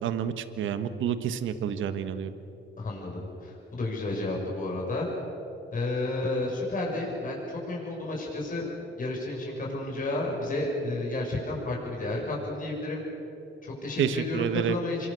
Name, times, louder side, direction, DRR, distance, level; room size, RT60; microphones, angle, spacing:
voice 1, 0.0-2.3 14.0-14.8, right 8 dB, 75° right, 11 dB, 1.4 m, -29 dB
voice 2, 2.8-5.1 5.7-8.7 9.0-13.0 13.6-15.1, left 2 dB, 45° left, -2 dB, 6.6 m, -31 dB
26.0 x 23.0 x 6.9 m, 2.9 s
cardioid pair, 90°, 20 cm